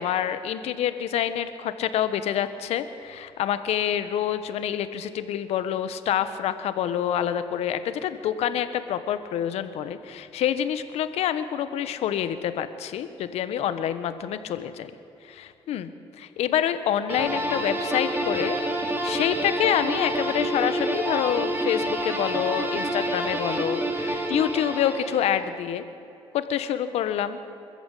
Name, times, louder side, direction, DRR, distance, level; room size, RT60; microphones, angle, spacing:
voice 1, 0.0-14.9 15.2-15.9 16.2-18.6 19.0-25.8 26.3-27.4, left 10 dB, 80° left, 11 dB, 1.3 m, -27 dB
sound 1, 17.1-25.4, right 1 dB, 20° right, 3.5 m, -28 dB
25.0 x 14.0 x 8.5 m, 2.9 s
cardioid pair, 90°, 11 cm